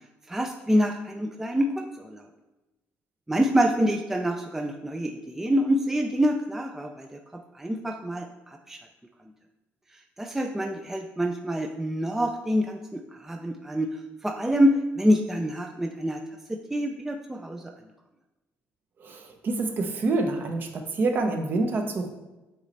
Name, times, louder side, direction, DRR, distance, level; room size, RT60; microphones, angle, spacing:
voice 1, 0.3-2.2 3.3-8.8 10.2-13.9 14.2-16.2 16.5-17.7, equal, 5° right, 3 dB, 0.3 m, -26 dB
voice 2, 19.0-22.1, right 3 dB, 45° right, 4 dB, 0.8 m, -27 dB
7.8 x 3.2 x 4.1 m, 1.1 s
cardioid pair, 135°, 5 cm